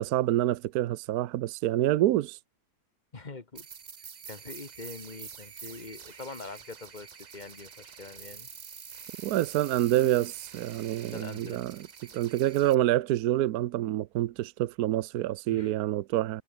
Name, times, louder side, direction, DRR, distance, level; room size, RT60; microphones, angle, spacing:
voice 1, 0.0-2.4 9.2-11.8 12.1-16.4, right 14 dB, 75° right, 1.1 m, -27 dB
voice 2, 3.1-3.7 4.3-8.5 11.1-11.6 15.5-15.7, left 3 dB, 30° left, 1.7 m, -44 dB
sound 1, 3.5-12.7, right 6 dB, 40° right, 0.6 m, -46 dB
omnidirectional pair, 1.7 m